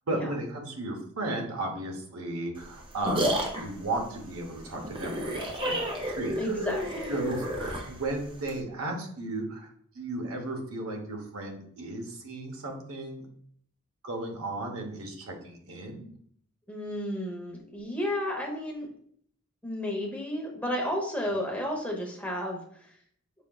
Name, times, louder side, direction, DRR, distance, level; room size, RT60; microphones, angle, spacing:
voice 1, 0.1-3.3 3.6-6.7 7.1-9.7 9.9-13.3 14.0-16.1, right 2 dB, 75° right, 2 dB, 0.9 m, -35 dB
sound 1, 2.6-8.6, right 1 dB, 25° right, 0.6 m, -32 dB
voice 2, 6.4-7.1 16.7-18.9 19.6-22.6, left 1 dB, 5° left, -1 dB, 0.9 m, -32 dB
5.3 x 3.7 x 2.3 m, 0.63 s
head